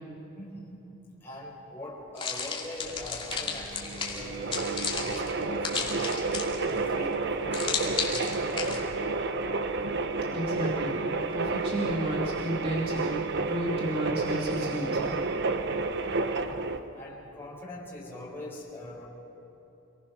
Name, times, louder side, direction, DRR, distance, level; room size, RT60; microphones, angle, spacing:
voice 1, 0.3-0.8 1.2-6.1 6.7-8.9 15.4-15.5 16.2-16.6 16.9-19.1, left 1 dB, 10° left, -4 dB, 4.6 m, -43 dB
sound 1, 2.2-6.8 7.5-8.8, left 5 dB, 25° left, 2.5 m, -33 dB
sound 2, 2.8-16.8, right 3 dB, 55° right, 0.9 m, -30 dB
voice 2, 10.3-11.0 11.3-15.2, right 1 dB, 30° right, -4 dB, 2.7 m, -32 dB
27.0 x 19.5 x 6.1 m, 3.0 s
head